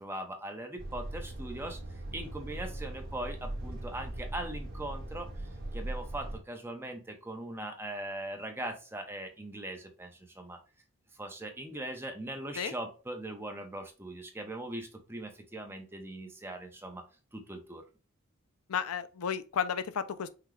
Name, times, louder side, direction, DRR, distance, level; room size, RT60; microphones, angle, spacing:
voice 1, 0.0-1.8 2.1-5.3 5.7-10.6 11.1-17.0 17.3-17.8, right 1 dB, 10° right, 0.8 m, -40 dB
Truck, 0.8-6.4, right 1 dB, 50° right, 1.7 m, -40 dB
voice 2, 18.7-20.3, left 7 dB, 85° left, 0.5 m, -33 dB
5.8 x 2.3 x 3.2 m
head